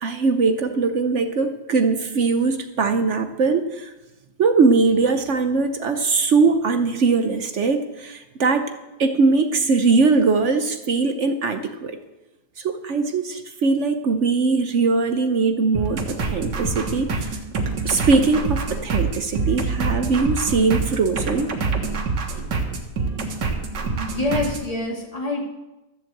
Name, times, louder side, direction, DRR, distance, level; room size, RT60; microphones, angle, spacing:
voice 1, 0.0-3.9 4.4-8.7 9.0-12.0 12.6-17.4 17.8-21.5, right 4 dB, 55° right, 8 dB, 0.9 m, -21 dB
sound 1, 15.7-24.7, right 4 dB, 85° right, 2.1 m, -26 dB
voice 2, 23.9-25.4, left 2 dB, 20° left, -1 dB, 2.6 m, -26 dB
13.5 x 7.4 x 7.8 m, 1.0 s
omnidirectional pair, 1.9 m